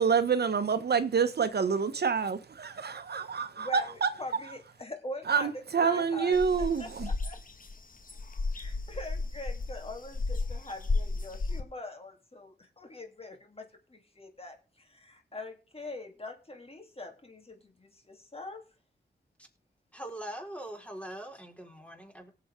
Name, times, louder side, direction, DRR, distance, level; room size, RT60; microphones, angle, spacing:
voice 1, 0.0-4.1 5.2-7.1, right 6 dB, 65° right, 0.9 m, -27 dB
voice 2, 3.6-3.9 4.2-5.5 5.8-7.4 8.5-18.6, left 2 dB, 35° left, 3.1 m, -43 dB
sound 1, 6.3-11.6, left 3 dB, 50° left, 1.7 m, -33 dB
voice 3, 19.9-22.3, right 1 dB, 5° left, 4.4 m, -42 dB
18.0 x 7.7 x 3.7 m
cardioid pair, 45°, 18 cm